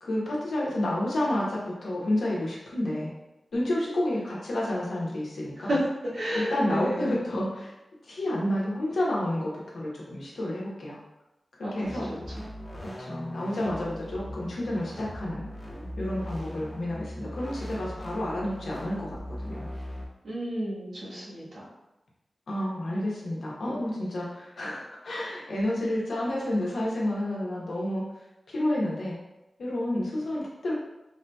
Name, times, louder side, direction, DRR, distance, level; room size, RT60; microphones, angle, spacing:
voice 1, 0.0-3.1 3.5-5.7 6.3-7.7 8.0-11.0 11.6-12.1 12.8-15.4 16.0-19.7 22.5-28.0 28.5-29.2 29.6-30.7, left 1 dB, 90° left, -4 dB, 0.8 m, -30 dB
voice 2, 6.1-7.2 11.6-12.5 20.2-21.7, equal, 90° right, -8 dB, 1.2 m, -32 dB
sound 1, 11.8-20.1, equal, 10° left, 0.6 m, -39 dB
3.5 x 2.7 x 2.2 m, 0.95 s
wide cardioid pair, 125°, 0 cm